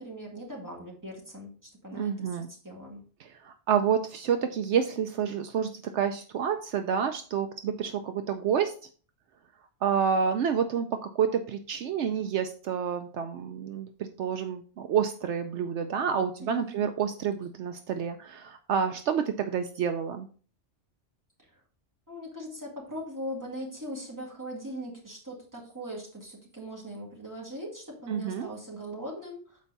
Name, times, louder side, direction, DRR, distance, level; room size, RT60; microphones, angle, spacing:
voice 1, 0.0-3.0 16.4-16.8 22.1-29.6, equal, 15° right, -2 dB, 2.1 m, -40 dB
voice 2, 1.9-2.5 3.2-8.7 9.8-20.3 28.1-28.5, right 7 dB, 75° right, 7 dB, 0.9 m, -29 dB
7.3 x 4.5 x 4.0 m, 0.40 s
omnidirectional pair, 1.2 m